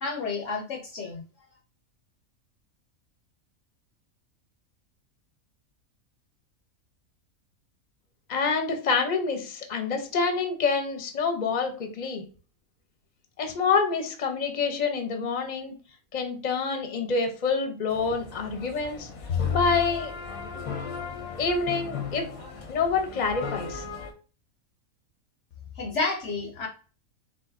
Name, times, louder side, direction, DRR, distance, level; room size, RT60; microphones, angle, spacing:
voice 1, 0.0-1.2 25.8-26.7, left 3 dB, 65° left, 2 dB, 1.0 m, -30 dB
voice 2, 8.3-12.2 13.4-15.7 16.1-19.1 19.5-20.1 21.4-22.3 22.7-23.8, left 4 dB, 35° left, 5 dB, 0.8 m, -27 dB
sound 1, 17.9-24.1, left 6 dB, 85° left, 1.3 m, -34 dB
4.6 x 3.4 x 2.6 m, 0.37 s
omnidirectional pair, 1.4 m